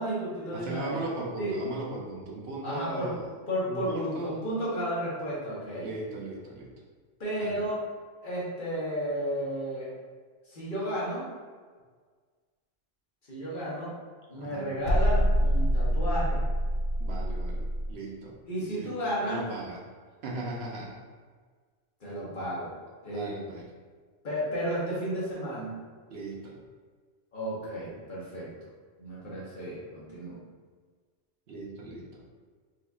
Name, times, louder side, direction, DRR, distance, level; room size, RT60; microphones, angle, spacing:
voice 1, 0.0-1.0 1.4-1.5 2.6-3.1 3.5-5.9 7.2-7.8 8.2-9.9 10.4-11.3 13.3-13.9 14.3-16.4 18.5-19.5 22.0-22.7 23.0-23.4 24.2-25.8 27.3-28.5 29.0-30.4, equal, 45° left, -8 dB, 1.3 m, -33 dB
voice 2, 0.5-3.2 3.7-4.4 5.8-6.7 7.4-7.6 14.3-14.8 17.0-18.9 19.2-19.8 20.2-21.0 23.1-23.6 26.1-26.6 31.5-32.2, right 2 dB, 70° right, -2 dB, 0.9 m, -38 dB
sound 1, 14.8-17.9, equal, 80° left, 0.8 m, -26 dB
4.2 x 2.8 x 2.3 m, 1.5 s
omnidirectional pair, 1.2 m